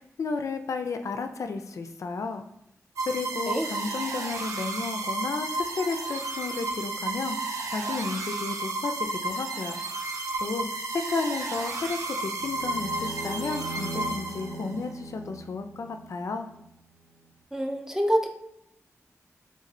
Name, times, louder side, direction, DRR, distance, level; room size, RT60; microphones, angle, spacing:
voice 1, 0.0-2.4 3.1-9.8 10.4-10.7 10.9-16.5, left 4 dB, 70° left, 7 dB, 0.4 m, -33 dB
sound 1, 3.0-14.8, right 2 dB, 90° right, 0.6 m, -32 dB
sound 2, 12.4-16.7, right 2 dB, 55° right, 1.0 m, -40 dB
voice 2, 17.5-18.3, equal, 10° right, 3 dB, 0.6 m, -26 dB
3.5 x 2.5 x 4.1 m, 0.80 s
wide cardioid pair, 90°, 6 cm